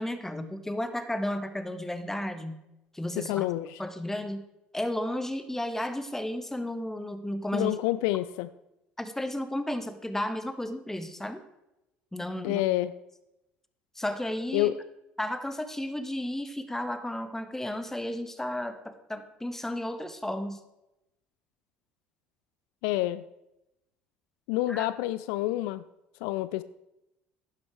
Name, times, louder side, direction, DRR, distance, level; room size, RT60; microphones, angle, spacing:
voice 1, 0.0-2.6 2.9-3.5 3.8-4.4 4.7-7.7 9.0-11.4 12.1-12.6 13.9-14.7 15.2-20.6 24.7-24.9, left 1 dB, 5° left, 10 dB, 1.3 m, -33 dB
voice 2, 3.2-3.8 7.5-8.5 12.4-12.9 14.5-14.8 22.8-23.2 24.5-25.8 26.2-26.6, left 16 dB, 70° left, 16 dB, 0.4 m, -28 dB
11.5 x 9.8 x 4.6 m, 0.90 s
hypercardioid pair, 65°, 5 cm